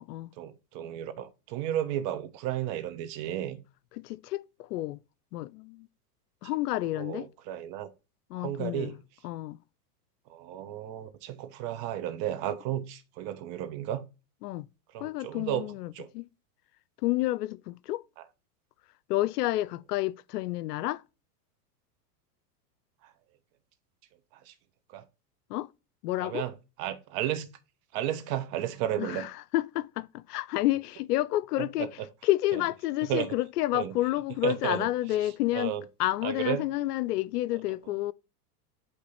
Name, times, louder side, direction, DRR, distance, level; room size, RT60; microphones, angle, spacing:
voice 1, 0.4-3.6 6.9-7.9 8.3-9.0 10.3-14.0 14.9-15.6 15.9-16.1 23.0-23.1 24.5-24.6 24.9-25.0 26.2-26.5 26.8-27.5 27.9-29.3 31.6-31.9 33.1-33.4 33.7-33.9 34.4-34.9 35.5-35.8 36.2-36.6, right 11 dB, 50° right, 1.2 m, -33 dB
voice 2, 4.0-5.0 5.3-5.9 6.4-7.3 8.3-8.9 9.2-9.6 14.4-14.7 15.0-16.2 17.0-18.0 19.1-21.0 25.5-25.7 26.0-26.4 29.0-31.9 32.2-38.1, left 16 dB, 75° left, 0.6 m, -30 dB
8.7 x 3.3 x 4.3 m
hypercardioid pair, 110°, 47 cm